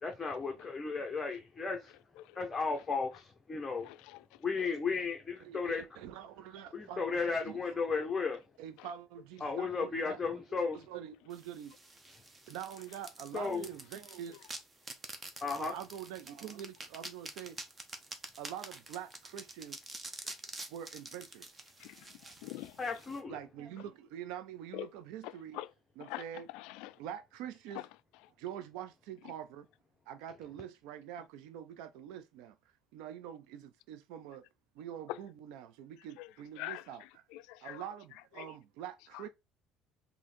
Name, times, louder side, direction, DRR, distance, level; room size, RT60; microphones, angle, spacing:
voice 1, 0.0-1.9 2.3-3.9 4.4-5.8 6.7-8.4 9.4-10.8 13.3-13.6 15.4-15.7 22.8-23.4, left 4 dB, 20° left, 0.7 m, -34 dB
voice 2, 3.8-4.2 21.8-22.0 22.4-22.7 24.7-24.9 25.5-25.7 26.0-26.2 26.5-27.0 35.1-35.2 36.2-36.3 36.6-36.8 37.3-37.8 38.4-38.5, left 17 dB, 80° left, 0.3 m, -42 dB
voice 3, 5.4-8.1 8.6-11.8 12.5-14.5 15.6-17.6 18.4-19.8 20.7-21.5 23.3-25.6 26.0-26.5 27.0-27.9 28.4-29.7 30.1-32.6 32.9-34.5 34.8-37.2 37.6-39.3, right 10 dB, 80° right, 0.5 m, -45 dB
sound 1, 11.3-23.2, right 2 dB, 20° right, 0.7 m, -48 dB
3.7 x 2.7 x 4.2 m
cardioid pair, 145°, 0 cm